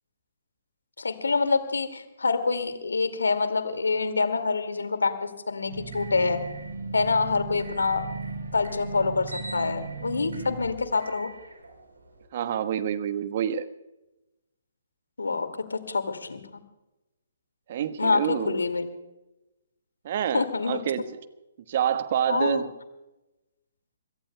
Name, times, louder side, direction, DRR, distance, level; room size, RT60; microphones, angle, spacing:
voice 1, 1.0-6.4 6.9-8.1 8.5-11.3 15.2-16.4 18.0-18.9 20.3-20.8 22.3-22.6, left 4 dB, 75° left, 9 dB, 2.2 m, -26 dB
sound 1, 5.7-12.2, right 3 dB, 75° right, 3.8 m, -37 dB
voice 2, 12.3-13.6 17.7-18.6 20.0-21.2 21.7-22.7, right 9 dB, 45° right, 12 dB, 1.2 m, -27 dB
26.5 x 17.5 x 2.3 m, 0.99 s
figure-of-eight pair, 135°, 0 cm